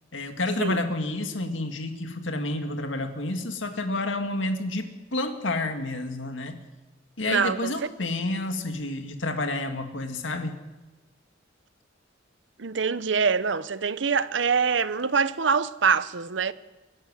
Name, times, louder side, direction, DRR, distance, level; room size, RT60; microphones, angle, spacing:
voice 1, 0.1-6.6 7.2-10.5, left 2 dB, 85° left, 2.0 m, -29 dB
voice 2, 7.3-7.7 12.6-16.5, right 5 dB, 70° right, 0.8 m, -24 dB
22.0 x 12.0 x 9.8 m
head